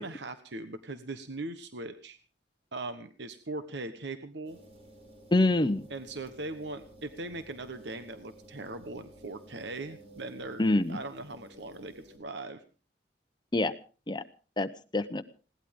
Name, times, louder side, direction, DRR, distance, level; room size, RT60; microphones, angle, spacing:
voice 1, 0.0-2.2 2.7-4.6 5.9-10.6 10.9-12.6, right 2 dB, 75° right, 10 dB, 1.1 m, -40 dB
sound 1, 4.4-12.2, equal, 35° right, 5.1 m, -53 dB
voice 2, 5.3-5.8 10.6-11.0 13.5-13.7 14.1-14.2 14.6-15.2, left 2 dB, 25° left, 11 dB, 0.8 m, -26 dB
20.5 x 17.5 x 3.6 m, 0.37 s
head